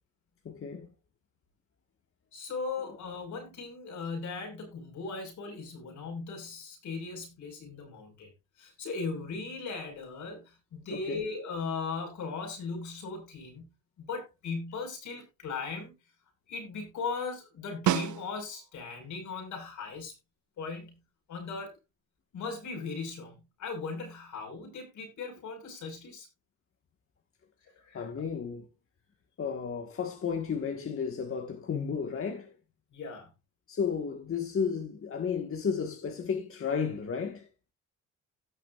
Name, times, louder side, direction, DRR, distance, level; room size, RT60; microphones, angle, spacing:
voice 1, 0.4-0.9 10.9-11.3 27.9-28.7 29.4-32.5 33.7-37.5, left 6 dB, 45° left, 1.7 m, -33 dB
voice 2, 2.3-8.3 8.6-15.9 16.5-20.1 20.6-21.0 21.3-21.7 22.3-26.3 27.8-28.1 32.9-33.3, left 4 dB, 75° left, 5.2 m, -38 dB
Snare drum, 17.9-18.8 23.2-23.3, right 11 dB, 75° right, 1.0 m, -30 dB
17.5 x 6.5 x 2.5 m
cardioid pair, 90°, 30 cm